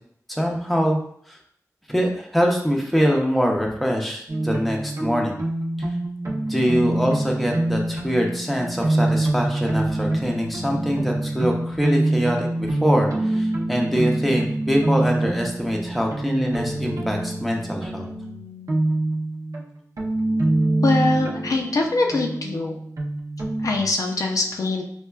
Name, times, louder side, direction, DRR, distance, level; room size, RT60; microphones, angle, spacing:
voice 1, 0.3-1.0 1.3-1.4 1.9-5.4 6.5-18.1, equal, ahead, 0 dB, 0.6 m, -23 dB
sound 1, 4.3-23.8, right 1 dB, 70° right, 0.6 m, -25 dB
voice 2, 20.8-22.7 23.6-24.8, left 2 dB, 70° left, 1 dB, 0.4 m, -23 dB
4.3 x 2.3 x 2.2 m, 0.65 s
wide cardioid pair, 90°, 6 cm